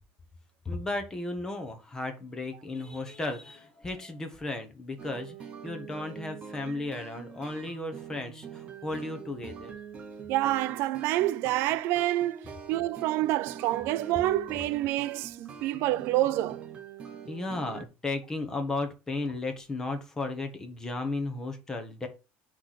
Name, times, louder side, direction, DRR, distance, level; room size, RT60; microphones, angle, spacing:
voice 1, 0.6-9.7 17.3-22.1, left 2 dB, 10° left, 1.0 m, -35 dB
sound 1, 5.0-17.8, right 7 dB, 25° right, 0.8 m, -44 dB
voice 2, 10.3-16.6, right 15 dB, 60° right, 0.4 m, -28 dB
9.6 x 3.3 x 4.1 m
cardioid pair, 170°, 5 cm